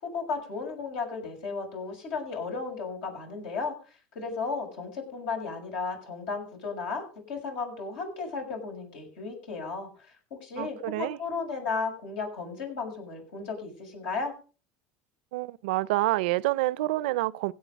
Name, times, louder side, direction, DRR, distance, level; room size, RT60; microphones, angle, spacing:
voice 1, 0.0-3.7 4.1-14.3, left 4 dB, 80° left, 6.5 m, -34 dB
voice 2, 10.6-11.2 15.3-17.5, right 18 dB, 80° right, 0.5 m, -28 dB
16.5 x 8.7 x 5.2 m
supercardioid pair, 105°, 5 cm